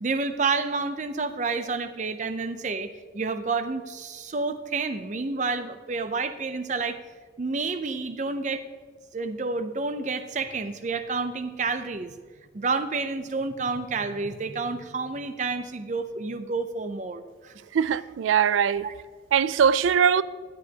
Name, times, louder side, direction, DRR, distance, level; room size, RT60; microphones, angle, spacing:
voice 1, 0.0-7.0 7.4-8.6 9.1-12.1 12.5-17.5 18.8-19.0, right 4 dB, 40° right, 0.5 m, -29 dB
voice 2, 17.7-18.9 19.3-20.2, right 7 dB, 90° right, 0.3 m, -21 dB
14.5 x 8.7 x 2.9 m
head